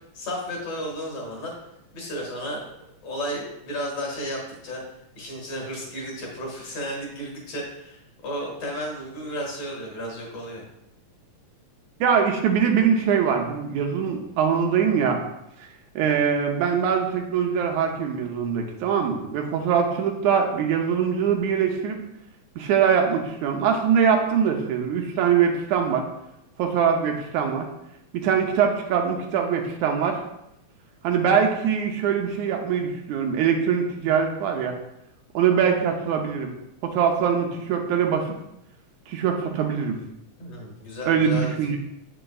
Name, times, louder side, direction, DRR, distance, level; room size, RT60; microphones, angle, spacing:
voice 1, 0.1-1.5 1.9-2.7 3.0-4.8 5.2-10.6 40.4-41.8, equal, 60° left, -2 dB, 2.7 m, -33 dB
voice 2, 12.0-15.2 16.0-22.0 22.6-26.1 26.6-27.7 28.1-30.2 31.0-34.8 35.3-36.5 36.8-38.4 39.1-40.0 41.1-41.8, right 7 dB, 80° right, 3 dB, 2.0 m, -22 dB
7.7 x 6.0 x 2.3 m, 0.84 s
omnidirectional pair, 3.4 m